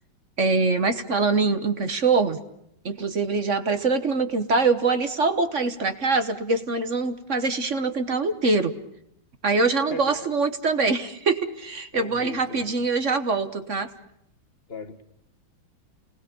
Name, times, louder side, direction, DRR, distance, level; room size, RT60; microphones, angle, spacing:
voice 1, 0.4-2.4 2.8-8.7 9.4-13.9, right 4 dB, 40° right, 10 dB, 1.4 m, -24 dB
voice 2, 11.9-12.7 14.7-15.0, left 4 dB, 30° left, 8 dB, 1.8 m, -37 dB
29.5 x 19.5 x 7.0 m, 0.76 s
omnidirectional pair, 2.2 m